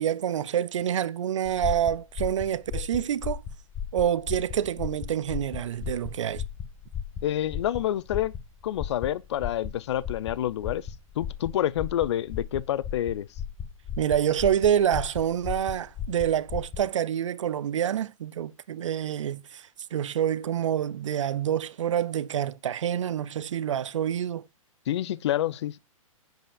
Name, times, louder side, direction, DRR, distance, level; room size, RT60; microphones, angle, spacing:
voice 1, 0.0-3.4 3.9-6.4 14.0-24.4, right 10 dB, 60° right, 0.4 m, -27 dB
sound 1, 1.5-16.9, left 8 dB, 20° left, 0.8 m, -36 dB
voice 2, 7.2-8.3 8.6-10.9 11.2-13.3 24.9-25.8, left 12 dB, 55° left, 0.4 m, -28 dB
10.0 x 5.3 x 2.3 m
figure-of-eight pair, 110°, 18 cm